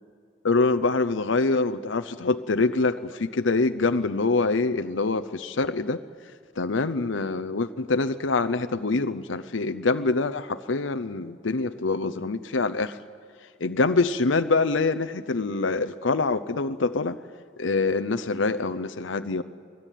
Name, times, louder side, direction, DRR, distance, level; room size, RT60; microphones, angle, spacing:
voice 1, 0.4-6.0 6.6-13.0 13.6-17.2 17.6-19.4, left 3 dB, 75° left, 10 dB, 0.8 m, -25 dB
24.5 x 18.5 x 9.3 m, 2.4 s
head